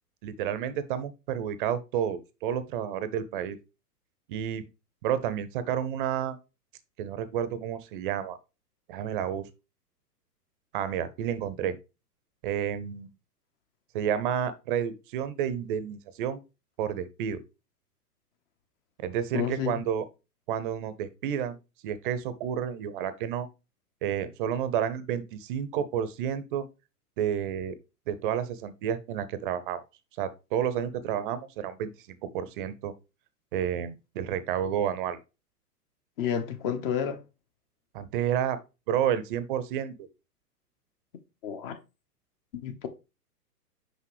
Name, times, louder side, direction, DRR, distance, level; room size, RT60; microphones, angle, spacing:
voice 1, 0.2-3.6 4.3-4.6 5.0-6.4 7.0-8.4 8.9-9.5 10.7-11.8 12.4-13.1 13.9-16.4 16.8-17.4 19.0-20.0 20.5-21.6 21.8-23.5 24.0-26.7 27.2-27.7 28.1-29.8 30.2-32.9 33.5-35.2 37.9-38.6 38.9-40.1, right 9 dB, 35° right, 0.7 m, -30 dB
voice 2, 19.3-19.8 36.2-37.2 41.4-41.8 42.5-42.9, left 8 dB, 35° left, 1.1 m, -30 dB
6.2 x 5.3 x 3.1 m
hypercardioid pair, 120°, 47 cm